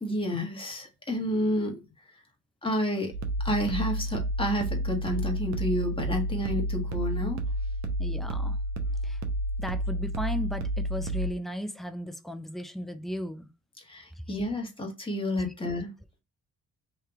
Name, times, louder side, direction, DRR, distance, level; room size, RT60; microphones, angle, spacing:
voice 1, 0.0-1.8 2.0-2.2 2.6-3.1 3.4-7.4 13.8-15.9, equal, 15° left, 1.4 m, -30 dB
sound 1, 3.1-11.3, right 1 dB, 65° right, 0.8 m, -30 dB
voice 2, 8.0-8.6 9.0-9.2 9.6-13.5, equal, ahead, 0.5 m, -35 dB
3.3 x 2.8 x 3.4 m
cardioid pair, 90°, 30 cm